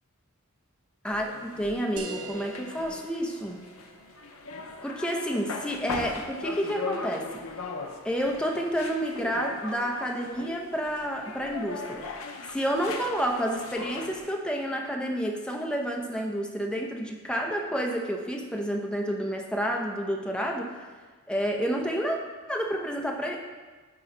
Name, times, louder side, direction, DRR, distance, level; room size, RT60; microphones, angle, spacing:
voice 1, 1.0-3.6 4.8-7.3 8.0-12.1 12.5-20.8 21.3-22.2 22.5-23.4, equal, 5° left, 1 dB, 0.6 m, -29 dB
sound 1, 1.1-14.3, left 4 dB, 75° left, 0.6 m, -39 dB
sound 2, 2.0-7.0, right 1 dB, 85° right, 0.7 m, -45 dB
8.5 x 3.0 x 4.9 m, 1.4 s
head